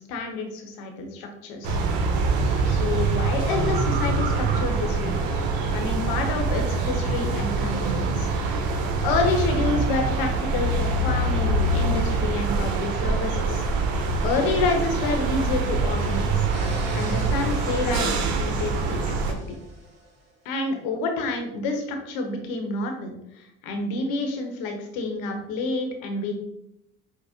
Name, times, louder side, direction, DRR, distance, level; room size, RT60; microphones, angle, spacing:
voice 1, 0.1-1.8 2.7-5.1 5.7-8.3 9.0-13.6 14.2-16.3 16.9-19.4 20.4-26.4, left 3 dB, 70° left, 4 dB, 0.8 m, -28 dB
sound 1, 1.6-19.3, right 3 dB, 70° right, 0.6 m, -24 dB
sound 2, 16.4-20.3, right 2 dB, 45° right, 1.2 m, -41 dB
4.9 x 2.0 x 2.7 m, 0.81 s
hypercardioid pair, 60°, 36 cm